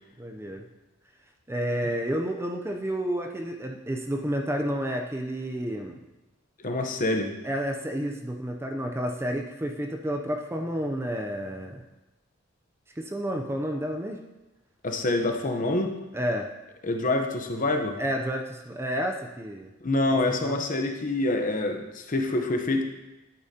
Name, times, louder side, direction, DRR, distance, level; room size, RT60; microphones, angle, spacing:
voice 1, 0.2-0.7 1.5-6.0 7.4-11.8 13.0-14.2 16.1-16.5 18.0-19.7 20.1-20.6, equal, 10° right, 3 dB, 0.5 m, -30 dB
voice 2, 6.6-7.3 14.8-16.0 16.8-18.0 19.8-22.8, left 2 dB, 40° left, 4 dB, 0.9 m, -26 dB
10.5 x 8.7 x 2.8 m, 1.0 s
head